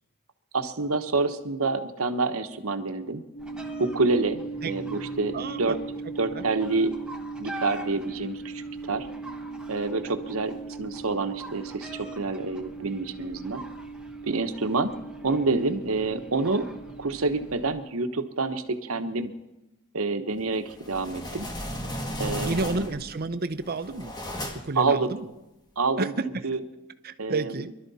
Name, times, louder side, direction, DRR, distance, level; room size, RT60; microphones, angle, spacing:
voice 1, 0.5-3.2 3.8-5.8 6.2-6.9 7.4-8.6 8.9-9.1 9.7-13.6 14.2-14.9 15.2-16.7 17.0-19.3 19.9-21.5 22.2-22.9 24.8-25.2 25.8-26.1 26.4-26.6 27.2-27.7, right 3 dB, 65° right, 8 dB, 1.1 m, -27 dB
sound 1, 3.3-17.5, right 3 dB, 40° left, 2.2 m, -39 dB
sound 2, 3.4-17.8, right 1 dB, 5° right, 1.1 m, -45 dB
voice 2, 5.3-5.8 6.3-6.4 22.4-24.1 24.6-25.2 26.0-26.5 27.0-27.7, right 3 dB, 45° right, 11 dB, 0.8 m, -30 dB
sound 3, 20.7-23.1 23.6-24.8, equal, 20° left, 1.7 m, -35 dB
23.0 x 12.0 x 4.2 m, 0.98 s
head